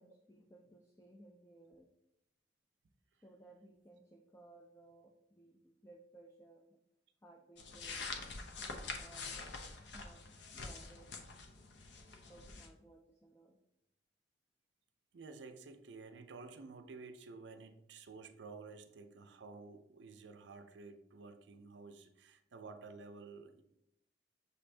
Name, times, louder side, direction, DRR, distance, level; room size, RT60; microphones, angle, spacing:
voice 1, 0.0-1.9 3.2-6.8 7.2-8.2 8.6-9.4 9.9-11.3 12.3-13.6, right 2 dB, 15° left, 1 dB, 0.3 m, -60 dB
sound 1, 7.6-12.7, left 4 dB, 75° left, 0.6 m, -46 dB
voice 2, 15.1-23.6, right 4 dB, 75° right, 8 dB, 0.4 m, -52 dB
6.3 x 2.6 x 3.2 m, 0.82 s
head